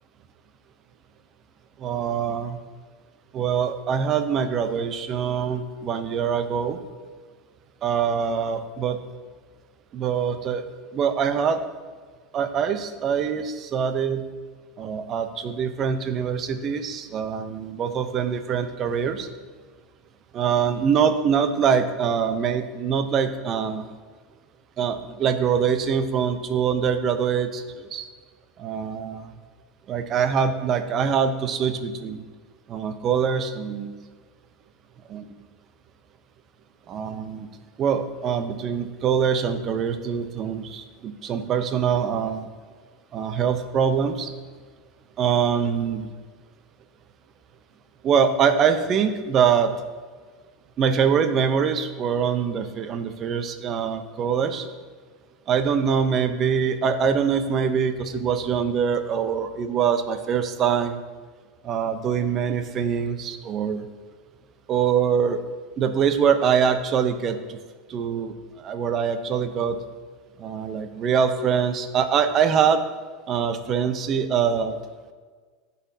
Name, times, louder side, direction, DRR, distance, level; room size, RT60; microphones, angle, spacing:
voice 1, 1.8-2.6 3.3-6.8 7.8-9.0 9.9-10.6 10.9-11.6 12.3-14.2 14.8-19.3 20.3-23.8 24.8-28.1 28.6-29.3 29.9-32.2 32.7-33.9 35.1-35.3 36.9-37.5 37.8-42.5 43.1-44.3 45.2-46.1 48.0-49.7 50.8-54.7 55.5-61.0 61.6-63.8 64.7-65.4 65.8-67.6 67.9-69.8 70.4-72.8 73.3-74.8, right 7 dB, 40° right, 9 dB, 0.7 m, -24 dB
12.5 x 4.2 x 2.8 m, 1.5 s
hypercardioid pair, 95°, 0 cm